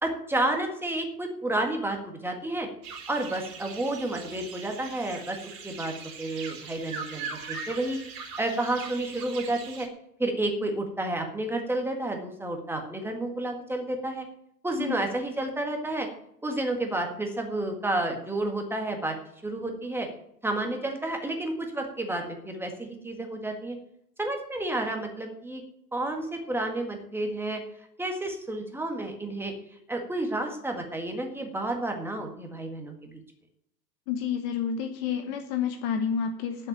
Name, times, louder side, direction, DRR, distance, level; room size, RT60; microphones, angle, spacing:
voice 1, 0.0-2.7 3.1-5.4 5.6-8.0 8.4-9.9 10.2-14.3 14.6-16.1 16.4-19.1 19.4-20.1 20.4-23.8 24.2-25.6 25.9-27.6 28.0-29.5 29.9-33.2, right 1 dB, 5° right, 3 dB, 1.7 m, -30 dB
sound 1, 2.8-9.9, right 5 dB, 55° right, 3.2 m, -41 dB
voice 2, 34.1-36.7, left 7 dB, 35° left, 7 dB, 1.2 m, -29 dB
9.6 x 7.5 x 8.9 m, 0.74 s
figure-of-eight pair, 110°, 48 cm